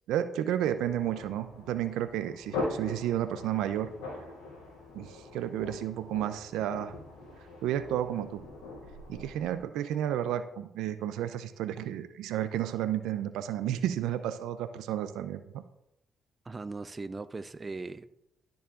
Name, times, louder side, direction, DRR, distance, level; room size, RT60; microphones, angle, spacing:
voice 1, 0.1-3.9 4.9-6.9 7.6-8.4 9.1-15.6, right 11 dB, 85° right, 11 dB, 0.5 m, -32 dB
sound 1, 0.6-9.6, left 2 dB, 90° left, 3.3 m, -41 dB
voice 2, 16.5-18.1, right 3 dB, 30° right, 13 dB, 0.4 m, -39 dB
12.0 x 7.0 x 2.5 m, 0.83 s
supercardioid pair, 65°, 0 cm